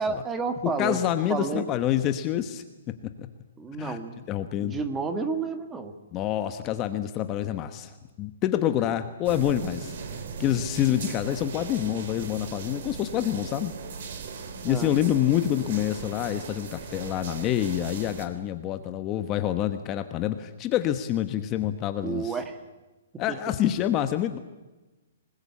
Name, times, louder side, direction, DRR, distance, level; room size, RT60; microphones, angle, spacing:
voice 1, 0.0-1.0 1.3-1.6 3.6-4.3 4.6-5.9 14.6-14.9 22.0-22.6, right 4 dB, 10° right, 8 dB, 1.7 m, -30 dB
voice 2, 0.8-2.6 3.2-3.3 3.8-4.0 4.3-4.8 6.1-13.7 14.6-22.4 23.2-24.4, left 11 dB, 20° left, 9 dB, 1.1 m, -27 dB
sound 1, 9.2-18.3, right 5 dB, 50° right, 3.4 m, -38 dB
25.5 x 20.5 x 8.5 m, 1.1 s
hypercardioid pair, 165°, 0 cm